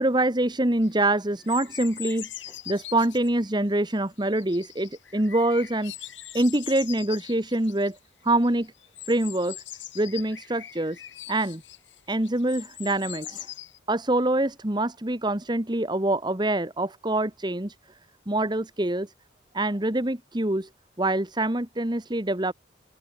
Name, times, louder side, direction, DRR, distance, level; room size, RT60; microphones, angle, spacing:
voice 1, 0.0-2.3 2.7-5.9 6.3-8.0 8.2-8.7 9.0-9.6 9.9-11.0 11.3-11.6 12.1-13.5 13.9-17.7 18.3-19.1 19.5-20.7 21.0-22.5, right 1 dB, 25° right, 1.5 m, -25 dB
sound 1, 0.8-1.1 1.4-3.4 3.9-4.0 4.2-8.0 8.3-13.8, left 12 dB, 85° left, 5.9 m, -42 dB
open air
head